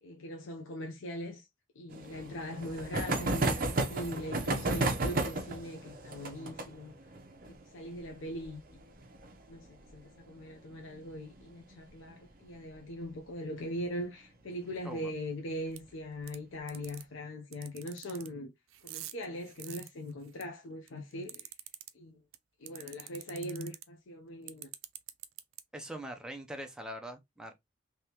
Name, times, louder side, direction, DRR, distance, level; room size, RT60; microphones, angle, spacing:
voice 1, 0.0-1.5 1.8-7.0 7.5-8.8 9.5-18.5 18.8-21.5 21.9-22.2 22.6-24.7, equal, 75° left, 0.7 m, -41 dB
sound 1, 1.9-11.1 11.4-11.5 11.7-11.8 12.1-12.2 13.6-13.9 14.5-14.9, right 2 dB, 45° right, 0.7 m, -34 dB
sound 2, 15.8-15.9 16.3-16.4 16.7-17.0 17.5-18.3 18.7-20.4 20.9-21.9 22.3-22.4 22.7-23.8 24.5-25.6, right 14 dB, 80° right, 0.4 m, -44 dB
voice 2, 25.7-27.5, right 1 dB, 5° right, 0.6 m, -42 dB
3.5 x 2.9 x 2.9 m
head